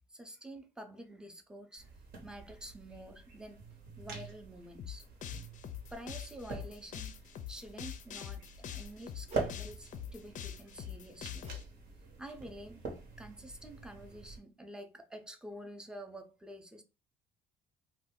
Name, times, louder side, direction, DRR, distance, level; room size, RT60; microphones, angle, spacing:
voice 1, 0.1-1.9 2.2-3.7 4.0-5.0 5.9-7.2 7.5-11.5 12.2-12.9 13.2-16.8, right 1 dB, 5° right, 0.5 m, -48 dB
sound 1, 1.8-14.4, right 4 dB, 65° right, 1.0 m, -45 dB
sound 2, 4.8-11.6, left 9 dB, 50° left, 0.4 m, -44 dB
sound 3, 9.3-9.6 11.4-11.7 12.0-12.3 12.8-12.9, right 5 dB, 40° right, 0.7 m, -49 dB
2.6 x 2.2 x 3.6 m
cardioid pair, 110°, 17 cm